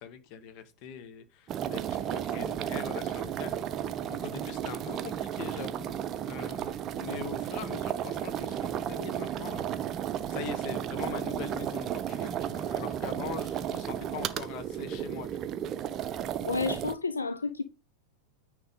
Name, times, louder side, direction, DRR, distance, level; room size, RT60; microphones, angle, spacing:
voice 1, 0.0-3.6 4.1-5.9 6.3-10.0 10.3-15.4, left 8 dB, 40° left, 1.2 m, -42 dB
sound 1, 1.5-16.9, right 10 dB, 30° right, 0.6 m, -33 dB
voice 2, 16.4-17.6, left 4 dB, 75° left, 0.6 m, -31 dB
9.3 x 3.4 x 5.2 m
figure-of-eight pair, 90°, 0 cm